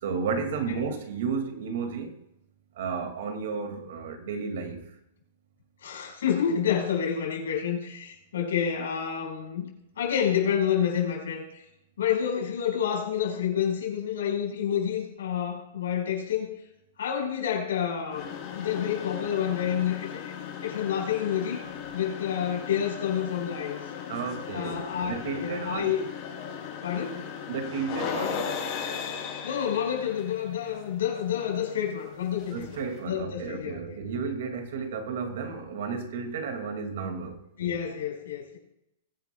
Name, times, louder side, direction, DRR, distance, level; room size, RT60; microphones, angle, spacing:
voice 1, 0.0-2.1 2.8-4.8 24.1-25.9 27.5-28.5 32.5-37.4, right 5 dB, 50° right, 6 dB, 2.1 m, -32 dB
voice 2, 5.8-9.7 10.0-11.6 12.0-16.6 17.0-20.3 20.6-21.6 21.9-23.8 24.5-26.1 26.8-27.2 29.4-33.9 37.6-38.6, left 8 dB, 90° left, 1 dB, 4.9 m, -29 dB
sound 1, 18.1-33.0, left 7 dB, 25° left, 5.3 m, -37 dB
21.0 x 10.5 x 2.3 m, 0.83 s
supercardioid pair, 180°, 0 cm